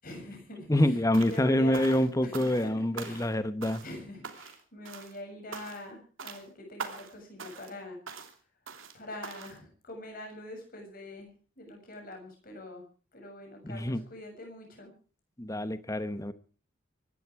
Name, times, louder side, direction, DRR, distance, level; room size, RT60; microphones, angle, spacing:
voice 1, 0.0-1.0 1.3-3.3 3.6-8.0 8.9-12.9 13.1-14.9, left 2 dB, 40° left, 3 dB, 7.1 m, -44 dB
voice 2, 0.7-3.8 13.6-14.0 15.4-16.3, left 1 dB, 15° left, 12 dB, 0.9 m, -26 dB
sound 1, 1.1-1.5 1.7-2.7 3.0-3.4 3.6-4.0 4.2-4.6 4.9-5.2 5.5-5.9 6.2-6.4 6.8-7.1 7.4-7.8 8.1-8.3 8.7-9.0 9.2-9.6, right 5 dB, 70° right, 2.8 m, -42 dB
24.0 x 12.0 x 4.8 m, 0.39 s
head